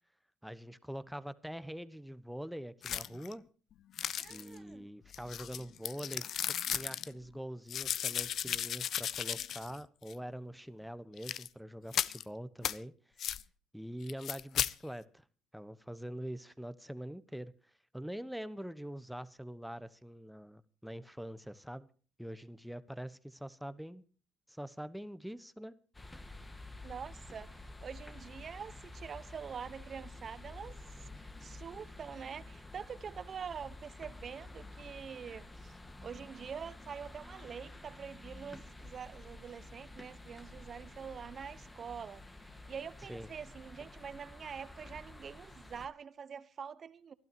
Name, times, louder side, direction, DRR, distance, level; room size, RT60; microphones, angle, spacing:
voice 1, 0.4-3.4 4.3-12.9 13.7-15.2 15.5-17.5 17.9-21.9 22.2-24.0 24.5-25.7 43.1-43.3, equal, ahead, 1.1 m, -44 dB
sound 1, 2.8-3.3 4.0-4.6 5.1-7.1 7.7-9.8 10.1-10.2 11.2-11.5 11.9-12.2 12.6-12.8 13.2-13.4 14.1-14.7, left 9 dB, 55° left, 0.6 m, -35 dB
voice 2, 4.2-4.9 26.8-47.1, right 7 dB, 40° right, 1.1 m, -45 dB
sound 2, 25.9-45.9, left 2 dB, 15° left, 1.6 m, -50 dB
24.0 x 12.0 x 3.0 m
supercardioid pair, 80°, 0 cm